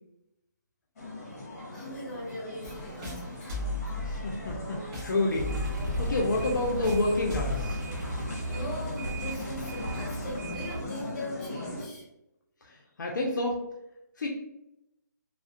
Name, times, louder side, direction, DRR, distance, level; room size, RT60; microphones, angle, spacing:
sound 1, 1.0-11.9, left 2 dB, 50° left, 0.9 m, -40 dB
voice 1, 1.7-3.6 8.5-12.1, equal, 35° left, -3 dB, 1.1 m, -40 dB
sound 2, 2.6-7.6, left 2 dB, 20° right, 0.5 m, -36 dB
voice 2, 4.0-7.8 12.6-13.6 14.2-14.3, left 2 dB, 75° left, -1 dB, 0.5 m, -29 dB
sound 3, 5.3-10.9, right 1 dB, 65° right, 0.6 m, -36 dB
2.4 x 2.1 x 2.5 m, 0.86 s
hypercardioid pair, 160°, 10 cm